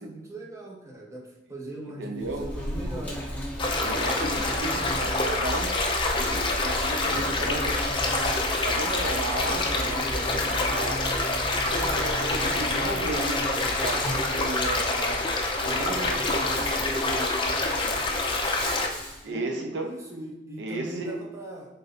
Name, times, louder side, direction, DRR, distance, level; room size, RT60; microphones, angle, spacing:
voice 1, 0.0-3.4 19.3-21.8, right 1 dB, 15° right, -1 dB, 0.7 m, -40 dB
voice 2, 2.0-2.5 3.6-5.7 6.1-8.1 8.6-17.9 19.2-20.0 20.6-21.3, right 2 dB, 75° right, 4 dB, 0.6 m, -35 dB
Insect, 2.2-19.2, equal, 10° left, 1.0 m, -35 dB
sound 1, 3.6-18.9, left 2 dB, 30° left, 0.5 m, -27 dB
3.9 x 2.6 x 4.1 m, 1.0 s
head